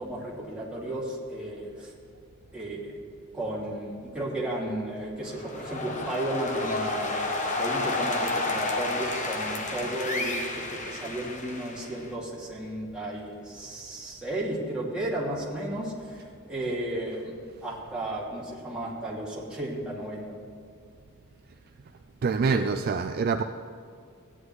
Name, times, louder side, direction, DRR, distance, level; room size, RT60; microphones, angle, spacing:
voice 1, 0.0-1.9 2.5-3.0 3.3-17.3 17.6-20.3 22.4-22.7, right 1 dB, 5° right, -7 dB, 2.5 m, -34 dB
sound 1, 5.2-12.1, left 2 dB, 35° left, 0.9 m, -31 dB
voice 2, 22.2-23.4, right 5 dB, 45° right, 7 dB, 0.3 m, -25 dB
16.0 x 9.9 x 3.2 m, 2.4 s
head